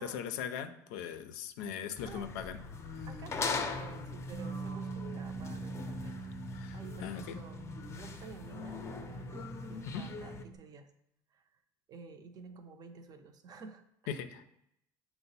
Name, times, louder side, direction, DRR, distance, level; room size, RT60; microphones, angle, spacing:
voice 1, 0.0-2.6 3.0-3.1 6.6-6.8 7.0-7.4 9.9-10.0 14.1-14.4, left 8 dB, 90° left, 9 dB, 0.4 m, -39 dB
sound 1, 2.0-10.4, left 4 dB, 30° left, 0.5 m, -40 dB
voice 2, 3.1-6.2 6.7-7.7 8.0-10.9 11.3-11.4 11.9-14.2, right 5 dB, 45° right, 7 dB, 0.5 m, -51 dB
Bass guitar, 4.3-10.6, right 7 dB, 70° right, 1.1 m, -46 dB
5.7 x 2.0 x 4.0 m, 0.78 s
supercardioid pair, 100°, 9 cm